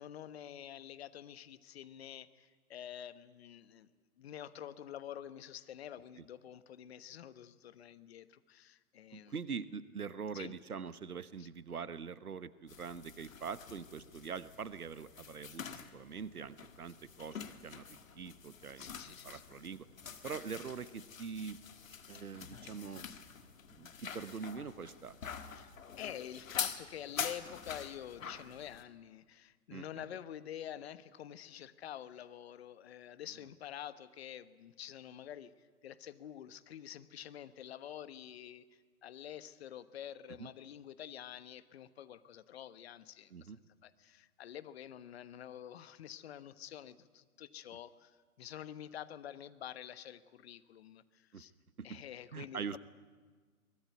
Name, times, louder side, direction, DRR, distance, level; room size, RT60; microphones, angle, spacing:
voice 1, 0.0-3.9 4.2-9.3 10.3-10.5 11.4-11.5 18.8-19.4 25.4-25.7 26.0-35.5 35.8-43.5 43.8-51.5 51.8-52.8, left 10 dB, 45° left, 14 dB, 1.2 m, -48 dB
voice 2, 9.1-19.9 20.2-21.6 22.1-23.0 23.7-25.2 29.7-30.0 40.4-40.5 43.3-43.6 51.3-51.5 51.9-52.0 52.3-52.8, right 6 dB, 75° right, 16 dB, 1.2 m, -44 dB
sound 1, 12.7-28.8, left 7 dB, 60° left, 1.8 m, -46 dB
23.0 x 19.5 x 9.3 m, 1.5 s
figure-of-eight pair, 120°, 45 cm